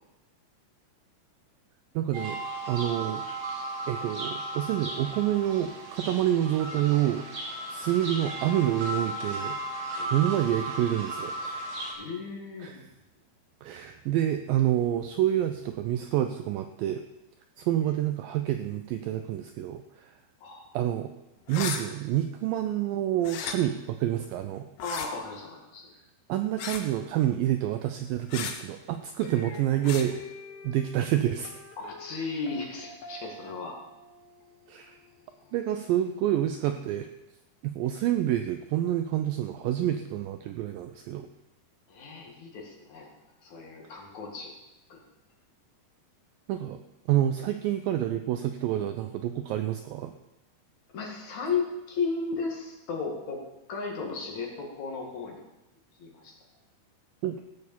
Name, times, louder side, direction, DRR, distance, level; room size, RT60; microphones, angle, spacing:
voice 1, 2.0-2.4 2.7-3.2 3.9-7.3 7.7-9.6 10.1-11.7 12.6-12.9 13.6-17.0 17.6-20.2 20.7-21.1 21.5-24.7 26.3-30.2 30.6-31.6 34.7-35.0 35.5-37.1 37.6-41.3 46.5-46.8 47.1-50.1 57.2-57.4, right 12 dB, 85° right, 8 dB, 2.0 m, -28 dB
sound 1, 2.1-11.9, right 2 dB, 40° right, 2.5 m, -35 dB
voice 2, 12.0-12.9 20.4-20.7 24.8-25.9 31.8-33.7 41.9-43.1 43.4-44.6 44.9-45.0 50.9-53.4 53.7-55.4 56.0-56.3, left 4 dB, 50° left, 0 dB, 3.0 m, -35 dB
sound 2, 21.5-21.8 23.2-23.6 24.8-25.1 26.6-26.9 28.3-28.5 29.8-30.1, left 7 dB, 70° left, 2.5 m, -34 dB
sound 3, 29.2-36.3, left 2 dB, 85° left, 3.7 m, -48 dB
16.0 x 6.8 x 7.2 m, 0.97 s
omnidirectional pair, 4.7 m